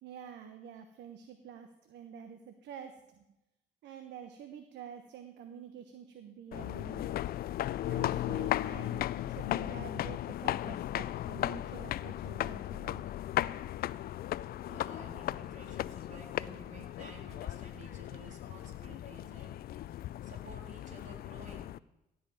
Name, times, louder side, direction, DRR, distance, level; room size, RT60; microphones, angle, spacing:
voice 1, 0.0-3.2 3.8-7.2 7.9-13.0, right 8 dB, 65° right, 8 dB, 1.1 m, -48 dB
sound 1, 6.5-21.8, left 13 dB, 50° left, 0.4 m, -36 dB
voice 2, 14.6-21.7, right 3 dB, 40° right, 1 dB, 3.6 m, -53 dB
16.0 x 5.4 x 9.0 m, 0.94 s
hypercardioid pair, 55°, 20 cm